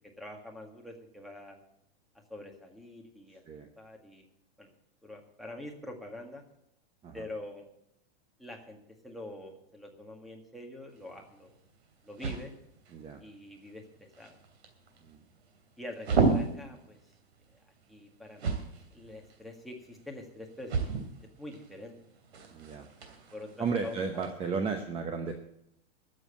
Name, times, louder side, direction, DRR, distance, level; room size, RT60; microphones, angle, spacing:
voice 1, 0.2-1.6 2.3-4.3 4.6-4.7 5.0-6.4 7.1-7.7 8.4-8.8 9.0-11.6 12.0-12.5 13.2-14.4 15.8-17.0 17.5-17.6 17.9-18.6 18.9-20.9 21.2-21.9 23.3-23.5 23.8-24.3, left 1 dB, ahead, 2 dB, 1.8 m, -45 dB
sound 1, 10.9-24.3, right 4 dB, 90° right, 2.8 m, -36 dB
voice 2, 22.5-22.9 23.6-25.3, right 5 dB, 20° right, 6 dB, 0.9 m, -34 dB
12.5 x 7.6 x 8.4 m, 0.77 s
supercardioid pair, 145°, 31 cm